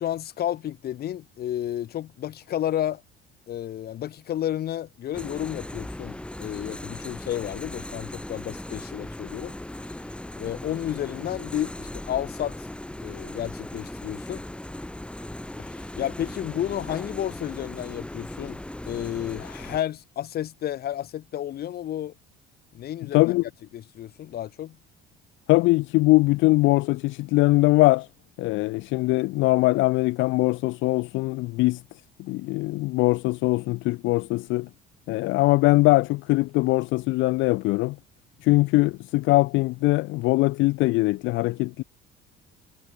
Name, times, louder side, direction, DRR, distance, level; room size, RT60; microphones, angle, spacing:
voice 1, 0.0-3.0 3.5-9.5 10.4-12.7 13.0-14.4 15.6-22.2 22.7-23.3 23.7-24.8, left 11 dB, 50° left, 1.8 m, -31 dB
sound 1, 5.1-19.8, left 1 dB, 5° left, 4.7 m, -38 dB
voice 2, 25.5-28.1 28.4-31.8 32.2-34.7 35.1-38.0 38.4-41.8, left 20 dB, 70° left, 0.5 m, -21 dB
cardioid pair, 135°, 21 cm